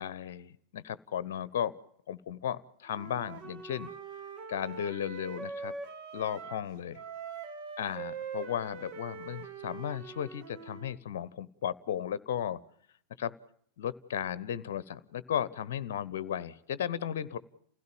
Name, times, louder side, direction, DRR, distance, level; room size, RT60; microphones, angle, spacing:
voice 1, 0.0-1.7 2.1-3.9 4.5-5.7 6.1-7.0 7.8-12.6 13.2-13.3 13.8-17.4, left 9 dB, 55° left, 19 dB, 0.9 m, -35 dB
Wind instrument woodwind instrument, 2.9-6.7 6.9-11.0, right 5 dB, 45° right, 2.3 m, -43 dB
29.5 x 16.5 x 7.0 m, 0.68 s
figure-of-eight pair, 90°, 0 cm